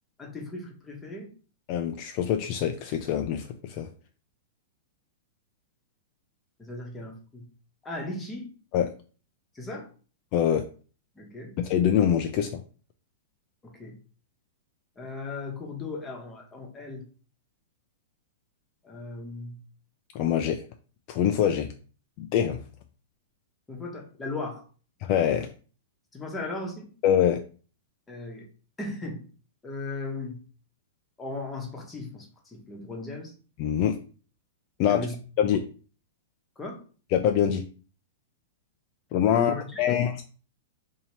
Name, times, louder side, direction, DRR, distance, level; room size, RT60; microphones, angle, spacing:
voice 1, 0.2-1.3 6.6-7.5 7.8-8.5 9.5-9.9 11.2-11.5 13.6-14.0 15.0-17.1 18.8-19.6 23.7-24.6 26.1-26.9 28.1-28.5 28.8-29.2 29.6-30.4 31.2-33.3 34.9-35.2 36.6-36.8 39.3-39.8, left 2 dB, 15° left, 0 dB, 1.0 m, -37 dB
voice 2, 1.7-3.9 8.7-8.9 10.3-10.6 11.6-12.6 20.1-20.6 21.1-21.7 22.2-22.6 25.0-25.5 27.0-27.4 33.6-34.0 34.8-35.1 35.4-35.6 37.1-37.6 39.1-40.2, left 9 dB, 45° left, 6 dB, 0.4 m, -24 dB
2.8 x 2.7 x 4.3 m, 0.39 s
hypercardioid pair, 135°, 0 cm